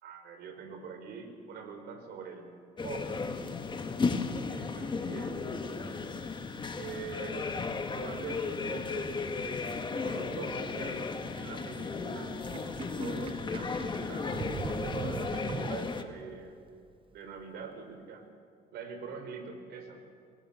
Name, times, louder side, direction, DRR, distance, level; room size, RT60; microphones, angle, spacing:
voice 1, 0.0-2.5 2.8-3.1 4.4-5.6 6.7-7.4 7.9-12.3 13.0-16.7 17.1-18.3 18.7-20.0, right 5 dB, 70° right, 6 dB, 4.4 m, -44 dB
sound 1, 2.8-16.0, left 4 dB, 30° left, 1.8 m, -35 dB
Sink (filling or washing), 12.4-16.2, right 7 dB, 30° right, 0.7 m, -41 dB
24.5 x 21.0 x 7.3 m, 2.3 s
cardioid pair, 110°, 17 cm